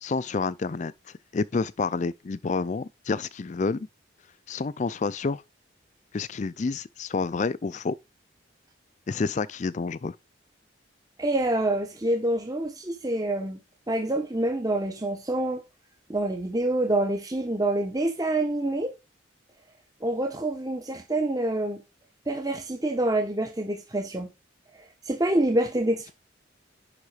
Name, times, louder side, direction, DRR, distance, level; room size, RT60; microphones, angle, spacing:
voice 1, 0.0-0.9 1.3-3.9 4.5-5.4 6.1-8.0 9.1-10.2, left 4 dB, 35° left, 0.4 m, -29 dB
voice 2, 11.2-13.6 13.9-15.6 16.1-18.9 20.0-21.8 22.3-24.3 25.0-26.1, right 1 dB, 20° right, 0.9 m, -26 dB
10.5 x 3.8 x 4.9 m
head